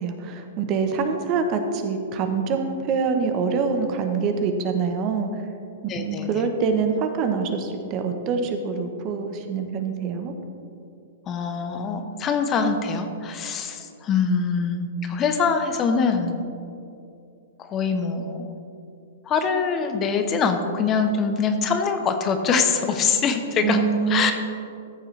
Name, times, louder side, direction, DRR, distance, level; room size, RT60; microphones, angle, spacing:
voice 1, 0.0-5.5 5.9-10.3 23.6-24.3, right 5 dB, 40° right, 6 dB, 0.9 m, -25 dB
voice 2, 5.9-6.5 11.3-16.3 17.6-18.5 19.3-23.8 24.1-24.3, left 5 dB, 25° left, 6 dB, 0.7 m, -24 dB
14.0 x 6.5 x 3.3 m, 2.6 s
hypercardioid pair, 130°, 0 cm